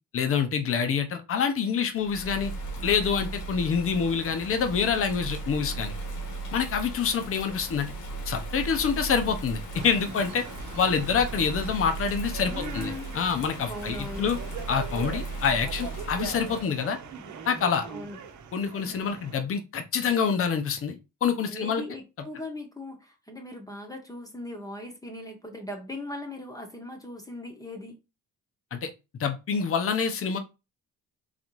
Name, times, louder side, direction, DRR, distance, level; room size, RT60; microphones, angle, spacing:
voice 1, 0.1-2.5 2.8-5.9 6.5-7.9 8.3-10.4 10.8-14.4 14.7-17.0 17.5-17.8 18.5-20.9 21.2-21.8 28.7-28.9 29.2-30.4, left 6 dB, 40° left, 0.8 m, -26 dB
Bird vocalization bird call bird song / Rain, 2.0-16.6, right 2 dB, 65° left, 1.5 m, -37 dB
sound 1, 9.7-19.4, right 6 dB, 60° right, 0.9 m, -41 dB
voice 2, 12.5-13.2 13.7-14.3 17.8-18.2 21.5-28.0, left 1 dB, 10° left, 1.0 m, -39 dB
4.1 x 3.2 x 3.1 m
cardioid pair, 105°, 33 cm